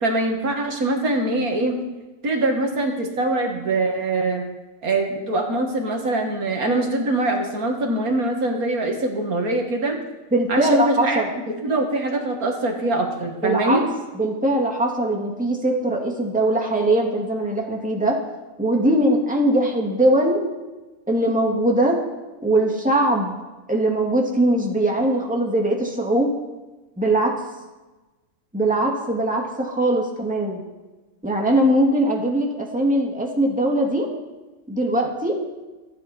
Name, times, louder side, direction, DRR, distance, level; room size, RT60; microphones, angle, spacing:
voice 1, 0.0-1.7 2.2-4.4 4.8-10.0 10.5-11.2 11.6-13.8, right 2 dB, 75° right, 2 dB, 2.3 m, -23 dB
voice 2, 10.3-11.3 13.4-13.8 14.1-18.2 18.6-20.4 21.1-22.0 22.4-23.3 23.7-26.3 27.0-27.3 28.5-30.6 31.2-34.1 34.7-35.4, right 1 dB, 5° right, -1 dB, 2.2 m, -21 dB
27.0 x 9.2 x 4.4 m, 1.2 s
omnidirectional pair, 1.6 m